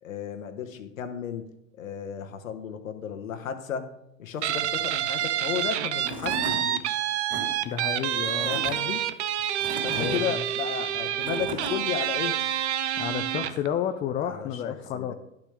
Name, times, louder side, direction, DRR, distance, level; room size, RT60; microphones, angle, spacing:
voice 1, 0.0-1.4 1.8-3.9 4.2-6.9 8.4-9.0 9.8-12.4 14.2-15.1, left 8 dB, 75° left, 7 dB, 1.3 m, -34 dB
Guitar, 4.4-13.7, right 11 dB, 60° right, 0.8 m, -28 dB
Tools / Wood, 5.7-5.8 6.0-6.6 7.1-7.4 8.2-8.7 9.4-10.2 10.9-11.7, right 2 dB, 20° right, 3.1 m, -36 dB
voice 2, 7.6-8.5 10.0-10.4 13.0-15.1, left 9 dB, 20° left, 7 dB, 0.5 m, -31 dB
11.0 x 7.0 x 3.4 m, 0.84 s
hypercardioid pair, 100°, 40 cm